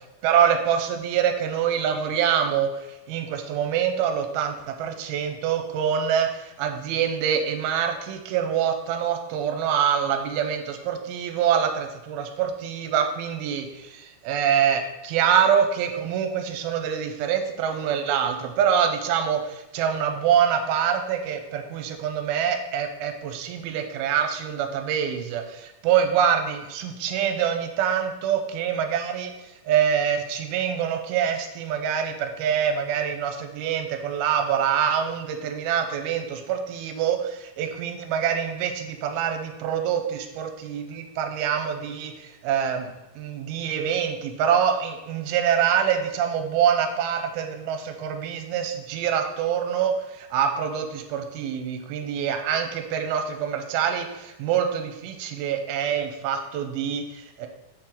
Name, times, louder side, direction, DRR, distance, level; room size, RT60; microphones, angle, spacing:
voice 1, 0.2-2.7 3.1-29.3 29.7-57.5, right 8 dB, 85° right, 5 dB, 2.5 m, -25 dB
6.5 x 4.4 x 3.8 m, 0.98 s
omnidirectional pair, 4.4 m